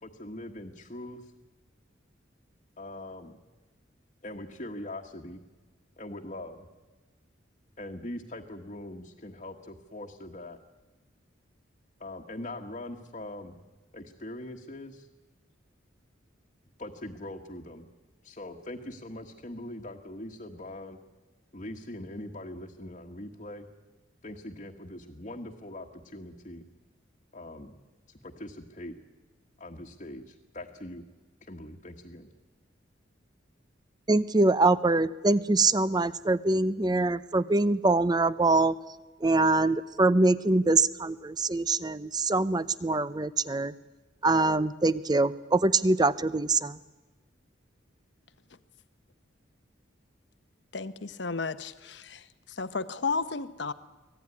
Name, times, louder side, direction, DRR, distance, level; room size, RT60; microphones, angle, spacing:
voice 1, 0.0-1.3 2.8-3.4 4.2-5.4 6.0-6.6 7.8-10.6 12.0-13.6 13.9-15.1 16.8-17.9 18.2-21.0 21.5-23.7 24.2-26.7 27.3-27.8 28.2-28.9 29.6-31.0 31.4-32.3, left 1 dB, 40° left, 1.4 m, -42 dB
voice 2, 34.1-38.8 39.2-43.7 44.2-46.8, right 2 dB, 20° right, 0.7 m, -24 dB
voice 3, 50.7-53.7, left 4 dB, 60° left, 1.0 m, -33 dB
24.5 x 17.0 x 9.8 m
head